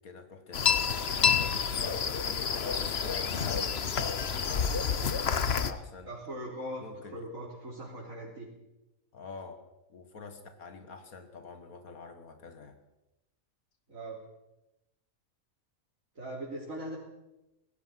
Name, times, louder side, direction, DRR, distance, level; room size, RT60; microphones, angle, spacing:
voice 1, 0.0-1.6 2.2-6.1 6.8-7.3 9.1-9.6 9.9-12.8, left 4 dB, 85° left, 7 dB, 2.3 m, -46 dB
sound 1, 0.5-5.7, left 6 dB, 50° left, 1.2 m, -28 dB
voice 2, 6.0-8.5 13.9-14.2 16.2-17.0, right 1 dB, 70° right, -5 dB, 4.3 m, -40 dB
25.5 x 19.0 x 5.9 m, 0.95 s
omnidirectional pair, 1.5 m